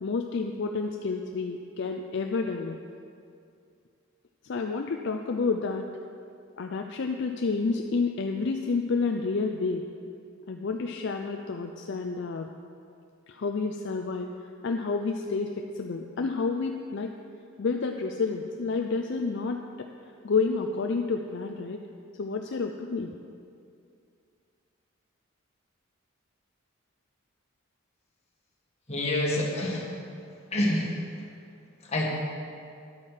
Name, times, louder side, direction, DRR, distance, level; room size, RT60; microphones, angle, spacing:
voice 1, 0.0-2.8 4.4-5.9 6.6-9.8 10.5-12.5 13.3-14.3 14.6-15.5 15.8-17.1 17.6-19.6 20.2-21.8 22.2-23.1, left 4 dB, 55° left, 4 dB, 0.5 m, -29 dB
voice 2, 28.9-29.9 30.5-30.9 31.8-32.1, left 1 dB, 30° left, -3 dB, 1.8 m, -27 dB
11.0 x 8.6 x 4.9 m, 2.4 s
head